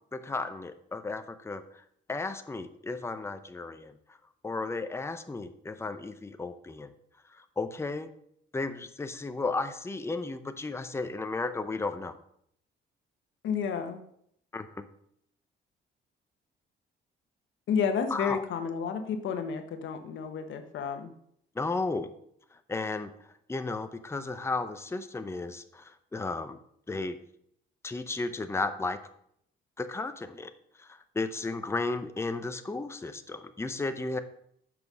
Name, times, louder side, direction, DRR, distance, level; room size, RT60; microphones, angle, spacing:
voice 1, 0.1-1.6 2.1-3.9 4.4-6.9 7.3-8.1 8.5-12.2 14.5-14.9 18.1-18.4 21.6-22.1 22.7-23.1 23.5-26.6 26.9-27.2 27.8-29.0 29.8-30.5 30.8-34.2, left 3 dB, 15° left, 9 dB, 0.6 m, -34 dB
voice 2, 13.4-14.0 17.7-21.1, left 6 dB, 75° left, 7 dB, 1.1 m, -31 dB
6.2 x 5.3 x 6.2 m, 0.70 s
cardioid pair, 90°, 20 cm